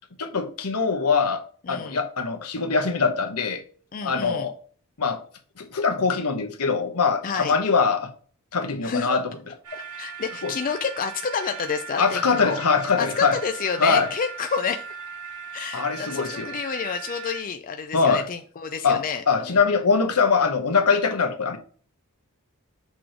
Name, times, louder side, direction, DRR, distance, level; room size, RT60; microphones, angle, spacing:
voice 1, 0.2-1.4 1.7-3.6 4.0-4.5 5.0-5.2 5.6-8.1 8.5-9.2 10.4-10.5 12.0-13.4 13.8-14.1 15.7-16.5 17.9-18.2 18.8-21.6, left 5 dB, 85° left, 1.1 m, -22 dB
voice 2, 1.6-2.0 3.9-4.5 7.2-7.6 8.8-9.2 9.7-12.6 13.0-15.0 15.5-19.6, left 6 dB, 40° left, 0.4 m, -29 dB
sound 1, 9.6-17.4, right 6 dB, 90° right, 1.1 m, -38 dB
6.0 x 3.1 x 5.0 m
head